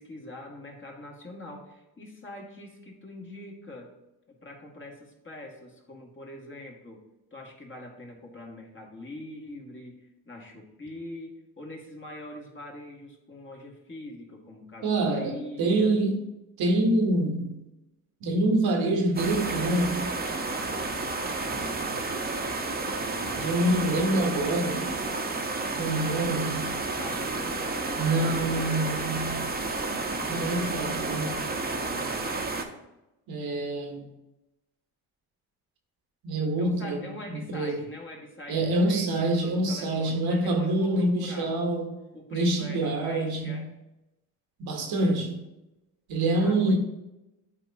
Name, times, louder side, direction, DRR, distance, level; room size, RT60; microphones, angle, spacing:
voice 1, 0.0-3.9 4.4-7.0 7.3-15.9 26.9-29.5 36.6-41.5 42.1-43.7 46.4-46.8, left 1 dB, 30° left, 2.0 m, -43 dB
voice 2, 14.8-16.3 16.6-17.6 18.2-20.1 23.3-24.9 25.8-26.8 28.0-29.5 30.3-31.5 33.3-34.1 36.2-37.9 38.5-41.9 42.3-43.7 44.6-45.4 46.1-46.8, right 1 dB, 70° right, 1.3 m, -26 dB
sound 1, 19.2-32.6, right 3 dB, 25° right, 1.0 m, -31 dB
9.7 x 4.2 x 2.8 m
supercardioid pair, 60°, 38 cm